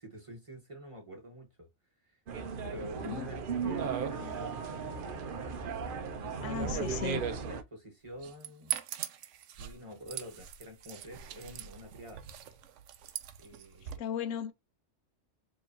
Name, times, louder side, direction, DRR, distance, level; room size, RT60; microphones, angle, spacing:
voice 1, 0.0-1.7 2.0-2.2 2.6-5.3 6.2-8.8 9.6-12.2 13.4-14.1, equal, 25° right, 1.1 m, -47 dB
sound 1, 2.3-7.6, right 6 dB, 55° right, 0.7 m, -36 dB
voice 2, 6.4-7.2 14.0-14.5, left 8 dB, 80° left, 1.0 m, -36 dB
sound 2, 8.1-14.0, right 11 dB, 75° right, 0.9 m, -42 dB
4.7 x 3.1 x 2.6 m
omnidirectional pair, 1.3 m